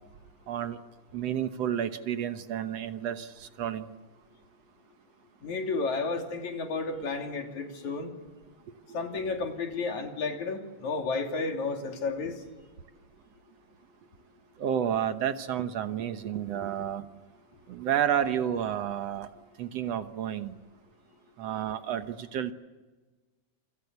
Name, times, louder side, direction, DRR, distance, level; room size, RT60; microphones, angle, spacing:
voice 1, 0.5-0.8 1.1-3.9 14.6-17.1 17.7-19.3 19.6-20.6 21.4-22.5, right 9 dB, 65° right, 9 dB, 2.1 m, -30 dB
voice 2, 5.4-8.1 8.9-12.4, left 4 dB, 75° left, 3 dB, 4.4 m, -32 dB
28.0 x 25.5 x 8.2 m, 1.3 s
omnidirectional pair, 3.3 m